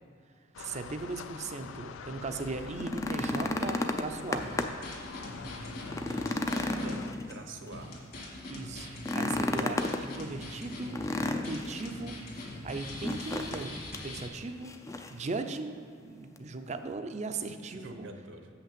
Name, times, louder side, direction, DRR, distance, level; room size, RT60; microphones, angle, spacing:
sound 1, 0.5-7.1, left 6 dB, 80° left, 0.4 m, -45 dB
voice 1, 0.6-4.5 8.5-11.0 11.2-12.2 12.6-13.7 14.0-14.7 15.1-15.8 16.0-18.1, right 3 dB, 35° right, 7 dB, 0.5 m, -38 dB
sound 2, 2.6-4.9 5.3-5.4 5.8-7.7 8.9-10.0 10.9-11.8 13.0-13.7 13.9-14.1 14.6-15.2 16.4-16.5, left 2 dB, 15° left, 0.4 m, -32 dB
sound 3, 4.3-7.0 7.3-7.4 7.7-14.3, left 1 dB, 50° left, 1.8 m, -43 dB
voice 2, 5.3-7.0 7.3-7.9 17.6-18.5, right 2 dB, 70° right, 5 dB, 0.9 m, -47 dB
6.6 x 5.8 x 7.4 m, 2.3 s
head